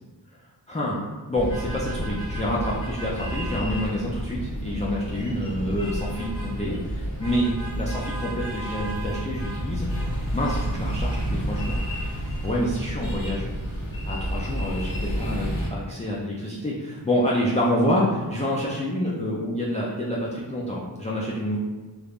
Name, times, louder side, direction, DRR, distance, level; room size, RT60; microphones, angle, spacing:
voice 1, 0.7-1.0 1.3-9.9 10.3-11.8 12.4-13.5 14.0-21.6, equal, 15° left, -5 dB, 0.3 m, -27 dB
sound 1, 1.3-15.7, equal, 80° left, 1.3 m, -30 dB
3.3 x 2.1 x 2.4 m, 1.3 s
wide cardioid pair, 50°, 45 cm